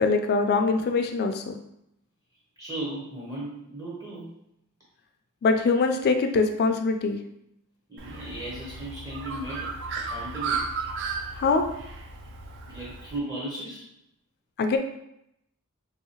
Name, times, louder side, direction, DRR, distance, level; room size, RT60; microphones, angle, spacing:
voice 1, 0.0-1.6 5.4-7.2 11.3-11.6 14.6-14.8, left 4 dB, 45° left, 6 dB, 0.3 m, -23 dB
voice 2, 2.6-4.3 7.9-9.8 10.1-10.7 12.6-13.9, right 1 dB, 15° right, -7 dB, 0.7 m, -36 dB
Bird, 8.0-13.2, right 4 dB, 55° right, 0.4 m, -34 dB
3.1 x 2.7 x 2.8 m, 0.78 s
head